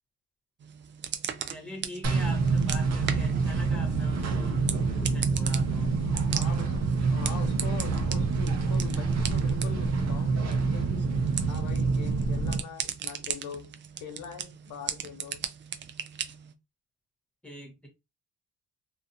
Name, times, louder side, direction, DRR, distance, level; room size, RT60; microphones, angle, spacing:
sound 1, 0.6-16.5, right 8 dB, 40° right, 0.4 m, -39 dB
voice 1, 1.5-5.9 6.4-6.7 17.4-17.9, left 1 dB, 5° left, 1.2 m, -43 dB
sound 2, 2.0-12.6, right 4 dB, 60° right, 0.8 m, -27 dB
voice 2, 6.3-11.1 11.5-15.4, left 7 dB, 80° left, 0.8 m, -43 dB
2.4 x 2.4 x 2.6 m
cardioid pair, 90°, 30 cm